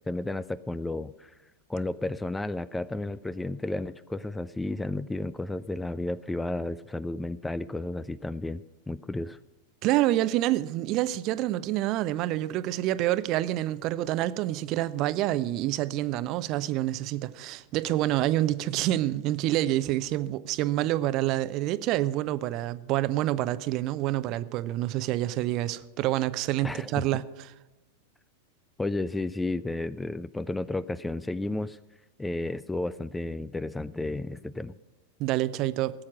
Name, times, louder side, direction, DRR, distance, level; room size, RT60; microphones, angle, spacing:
voice 1, 0.1-1.4 1.7-9.4 26.6-27.1 28.8-31.8 32.2-34.7, left 2 dB, 5° left, 0.4 m, -32 dB
voice 2, 9.8-27.2 35.2-35.9, right 15 dB, 40° right, 0.6 m, -27 dB
17.5 x 8.7 x 6.1 m
figure-of-eight pair, 90°, 0 cm